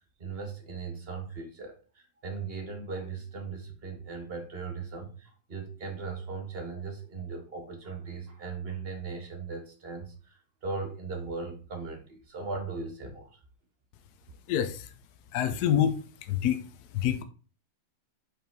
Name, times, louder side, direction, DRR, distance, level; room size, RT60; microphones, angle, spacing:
voice 1, 0.0-13.4, right 4 dB, 30° right, 4 dB, 1.3 m, -38 dB
voice 2, 14.5-14.9 15.3-16.6 16.9-17.2, left 10 dB, 75° left, 9 dB, 0.9 m, -27 dB
5.2 x 4.5 x 4.6 m, 0.37 s
omnidirectional pair, 2.4 m